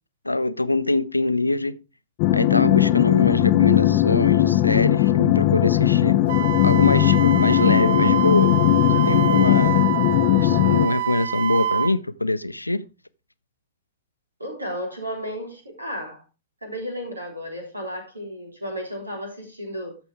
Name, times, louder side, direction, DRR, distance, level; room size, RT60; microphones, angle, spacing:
voice 1, 0.2-1.8 2.3-6.2 6.6-8.6 9.1-9.9 10.4-12.9, left 2 dB, 85° left, 0.5 m, -23 dB
sound 1, 2.2-10.9, left 14 dB, 40° left, 0.7 m, -18 dB
Wind instrument woodwind instrument, 6.3-11.9, right 10 dB, 55° right, 0.4 m, -26 dB
voice 2, 14.4-16.2 16.6-20.0, equal, 85° right, 3.9 m, -33 dB
13.0 x 6.2 x 3.5 m
figure-of-eight pair, 100°, 0 cm